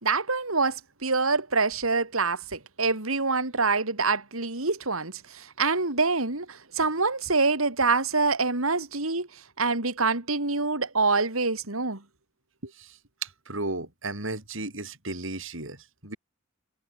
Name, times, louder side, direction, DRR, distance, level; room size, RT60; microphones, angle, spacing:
voice 1, 0.0-9.3 9.6-12.0, right 4 dB, 85° right, 3.6 m, -26 dB
voice 2, 12.8-16.2, right 2 dB, 65° right, 7.1 m, -35 dB
head